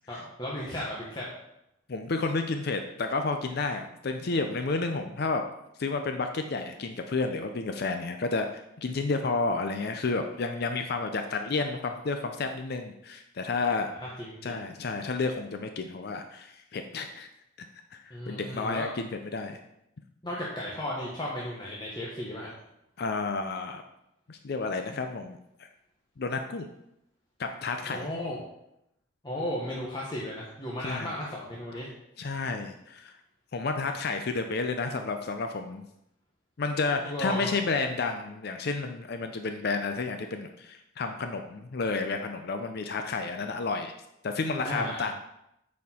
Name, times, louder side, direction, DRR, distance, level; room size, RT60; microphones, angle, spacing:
voice 1, 0.1-1.3 14.0-14.5 18.1-18.9 20.2-22.5 27.8-28.4 29.2-31.9 37.0-37.5 44.6-45.0, left 1 dB, 20° left, -5 dB, 1.0 m, -35 dB
voice 2, 1.9-5.4 5.8-13.9 14.4-17.3 17.9-19.6 23.0-23.8 24.3-25.7 26.2-26.7 27.4-28.1 30.8-31.1 32.2-33.1 33.5-35.8 36.6-43.9 44.2-45.1, left 3 dB, 55° left, 6 dB, 0.5 m, -31 dB
8.3 x 4.3 x 4.3 m, 0.82 s
head